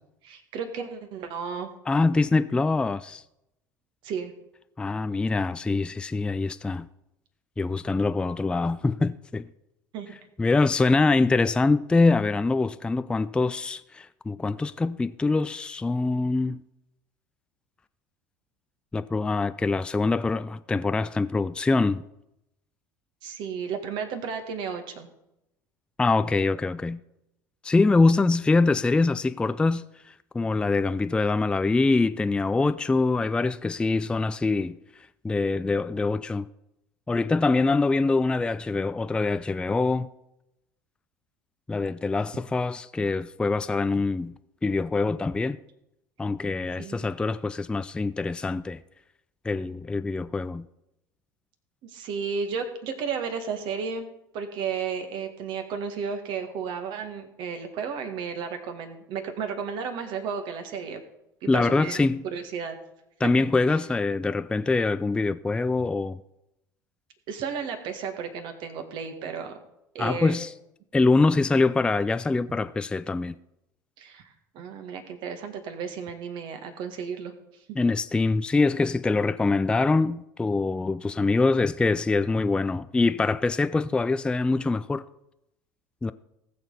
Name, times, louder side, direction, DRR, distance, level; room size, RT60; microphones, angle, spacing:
voice 1, 0.2-1.7 4.0-4.3 9.9-10.2 23.2-25.1 46.8-47.1 51.8-54.1 54.3-61.0 61.4-62.0 62.3-62.8 67.3-69.6 69.9-70.4 74.0-77.3 77.7-77.8, right 6 dB, 50° right, 1.8 m, -33 dB
voice 2, 1.9-3.2 4.8-6.9 7.6-9.4 10.4-16.6 18.9-22.0 26.0-27.0 27.6-34.8 35.2-36.5 37.1-40.1 41.7-44.3 44.6-45.6 46.2-48.8 49.4-50.6 61.5-62.2 63.2-66.2 70.0-70.5 70.9-73.4 77.8-85.0 86.0-86.1, left 3 dB, 10° left, 0.4 m, -24 dB
19.0 x 6.9 x 4.1 m
figure-of-eight pair, 65°, 10 cm